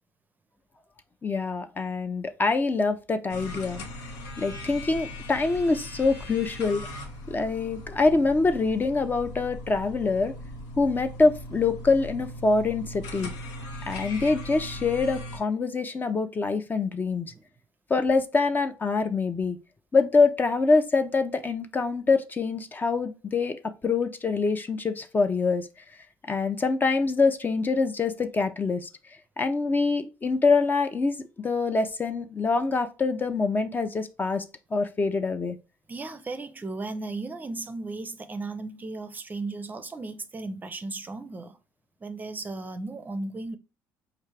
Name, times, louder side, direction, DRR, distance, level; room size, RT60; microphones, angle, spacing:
voice 1, 1.2-3.8 4.4-6.8 7.3-10.3 10.8-13.3 13.9-17.3 17.9-19.6 19.9-25.7 26.3-28.9 29.4-34.4 34.7-35.6, left 4 dB, 25° left, 0.4 m, -25 dB
sound 1, 3.3-15.4, left 1 dB, 90° left, 0.8 m, -39 dB
voice 2, 35.9-41.6 42.0-43.6, right 3 dB, 25° right, 0.5 m, -35 dB
4.5 x 2.4 x 3.3 m
supercardioid pair, 85°, 7 cm